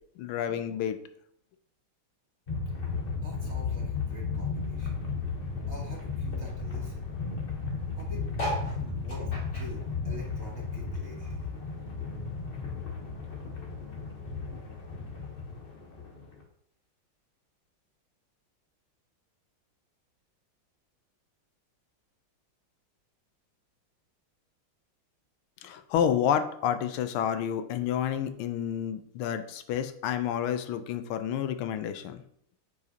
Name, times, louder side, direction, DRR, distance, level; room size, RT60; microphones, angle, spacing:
voice 1, 0.2-1.0 25.6-32.2, left 9 dB, 90° left, 9 dB, 1.5 m, -29 dB
sound 1, 2.5-16.4, left 4 dB, 35° left, 1.0 m, -34 dB
voice 2, 3.1-5.0 5.7-7.1 8.0-11.5, left 1 dB, 35° right, -2 dB, 1.5 m, -46 dB
sound 2, 8.3-11.1 11.4-12.9 13.4-13.5 13.7-13.8 14.0-14.4 15.2-15.3, equal, 50° left, 3.0 m, -38 dB
9.1 x 4.9 x 2.8 m, 0.68 s
omnidirectional pair, 2.3 m